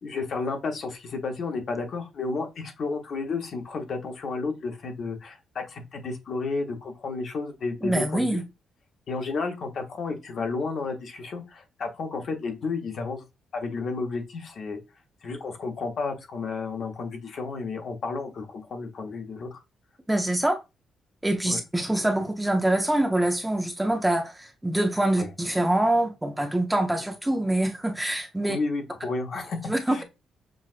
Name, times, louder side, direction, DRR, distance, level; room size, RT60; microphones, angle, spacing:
voice 1, 0.0-8.4 9.1-13.2 13.5-14.8 15.2-19.6 21.5-21.6 25.2-25.3 28.5-30.0, left 4 dB, 50° left, 0.9 m, -32 dB
voice 2, 7.8-8.4 20.1-20.6 21.2-28.6 29.7-30.0, right 1 dB, 5° right, 0.5 m, -25 dB
6.2 x 2.3 x 2.4 m
cardioid pair, 150°, 0 cm